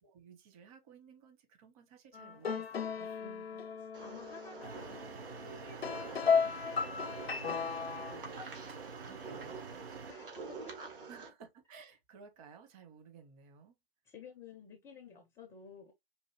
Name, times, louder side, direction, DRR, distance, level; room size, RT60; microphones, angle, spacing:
voice 1, 0.0-3.2 9.0-9.6 11.1-13.8, right 6 dB, 35° right, 1.2 m, -56 dB
sound 1, 2.1-8.2, left 6 dB, 85° left, 0.6 m, -35 dB
voice 2, 3.2-8.4 10.1-10.9 14.0-15.9, left 5 dB, 10° left, 0.4 m, -54 dB
sound 2, 3.9-11.3, right 4 dB, 65° right, 1.8 m, -47 dB
sound 3, 4.6-10.1, right 5 dB, 80° right, 0.7 m, -48 dB
4.8 x 2.6 x 2.9 m
figure-of-eight pair, 120°, 30 cm